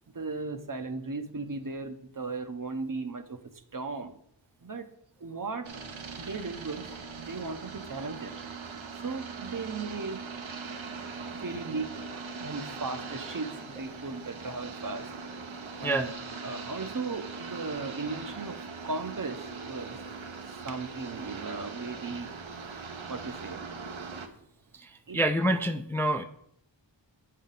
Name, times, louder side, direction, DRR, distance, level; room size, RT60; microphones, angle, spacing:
voice 1, 0.1-3.4 3.7-4.2 4.6-4.9 5.2-5.7 6.2-6.9 7.2-8.4 9.0-10.3 11.3-15.1 15.8-16.1 16.4-20.0 20.6-22.3 23.1-23.7 25.1-25.2, right 3 dB, 45° right, 9 dB, 0.7 m, -36 dB
sound 1, 5.6-24.3, right 4 dB, 85° right, 0.8 m, -41 dB
voice 2, 24.8-26.2, right 1 dB, 5° left, 7 dB, 0.4 m, -27 dB
8.2 x 5.6 x 3.9 m, 0.71 s
wide cardioid pair, 45°, 46 cm